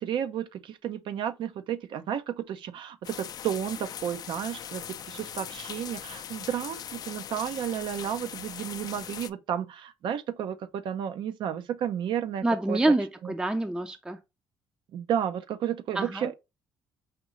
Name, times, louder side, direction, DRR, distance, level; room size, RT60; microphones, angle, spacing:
voice 1, 0.0-12.8 13.2-13.3 14.9-16.3, right 9 dB, 65° right, 0.6 m, -32 dB
sound 1, 3.0-9.3, left 9 dB, 50° left, 0.3 m, -40 dB
voice 2, 12.4-14.2 16.0-16.3, right 2 dB, 10° right, 0.5 m, -26 dB
5.2 x 2.7 x 3.1 m
cardioid pair, 90°, 9 cm